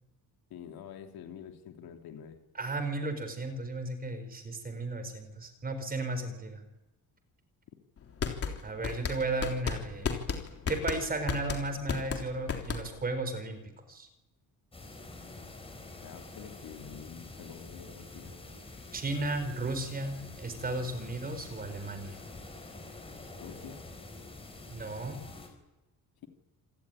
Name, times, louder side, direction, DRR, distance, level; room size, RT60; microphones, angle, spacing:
voice 1, 0.5-2.4 15.2-15.3 16.0-18.4 23.4-23.9, left 8 dB, 90° left, 5 dB, 3.1 m, -47 dB
voice 2, 2.5-6.6 8.6-10.2 10.7-14.1 18.9-22.2 24.7-25.2, right 2 dB, 25° right, 9 dB, 4.4 m, -34 dB
sound 1, 8.0-13.1, left 6 dB, 40° left, 3.5 m, -33 dB
sound 2, 14.7-25.5, left 2 dB, 15° left, 4.6 m, -47 dB
27.0 x 18.5 x 9.8 m, 1.0 s
cardioid pair, 170°, 35 cm